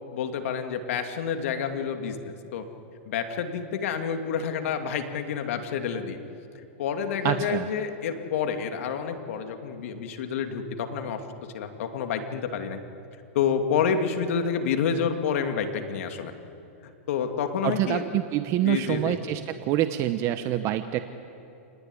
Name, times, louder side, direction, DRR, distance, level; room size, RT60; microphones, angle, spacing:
voice 1, 0.1-2.6 3.1-6.2 6.8-11.2 11.5-12.8 13.3-16.3 17.1-18.0 18.6-19.2, left 7 dB, 65° left, 5 dB, 2.5 m, -28 dB
voice 2, 7.2-7.7 17.6-21.0, right 13 dB, 40° right, 9 dB, 1.1 m, -26 dB
29.0 x 19.0 x 9.9 m, 2.7 s
hypercardioid pair, 135°, 8 cm